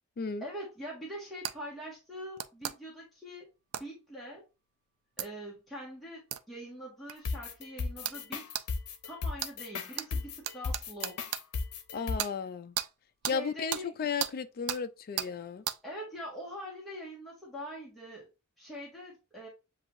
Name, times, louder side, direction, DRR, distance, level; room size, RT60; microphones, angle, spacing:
voice 1, 0.4-3.5 3.8-4.4 5.2-8.5 9.0-11.2 13.2-13.9 15.8-18.3 18.6-19.5, equal, ahead, 1.5 m, -43 dB
sound 1, 1.4-1.6 2.4-2.8 3.7-3.9 5.2-5.3 6.3-6.4 7.1-7.2 8.0-8.2 8.5-8.7 9.4-9.5 10.0-10.1 10.4-11.4 12.2-12.3 12.8-12.9 13.2-13.4 13.7-13.8 14.2-14.3 14.7-14.8 15.2-15.3 15.7-15.8, right 11 dB, 80° right, 0.4 m, -34 dB
sound 2, 7.2-12.2, left 4 dB, 80° left, 0.7 m, -35 dB
voice 2, 11.9-12.8 13.3-15.6, left 5 dB, 45° left, 0.4 m, -34 dB
7.5 x 2.7 x 2.5 m
head